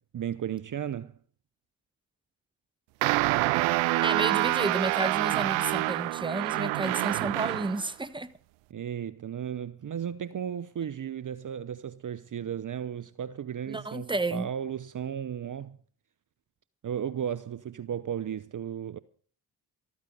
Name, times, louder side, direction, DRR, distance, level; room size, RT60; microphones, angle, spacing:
voice 1, 0.1-1.2 8.7-15.8 16.8-19.0, right 9 dB, 45° right, 0.8 m, -35 dB
sound 1, 3.0-7.8, right 19 dB, 85° right, 0.6 m, -27 dB
voice 2, 4.0-8.3 13.7-14.5, right 2 dB, 10° right, 1.2 m, -31 dB
14.0 x 13.5 x 5.4 m
hypercardioid pair, 45°, 45 cm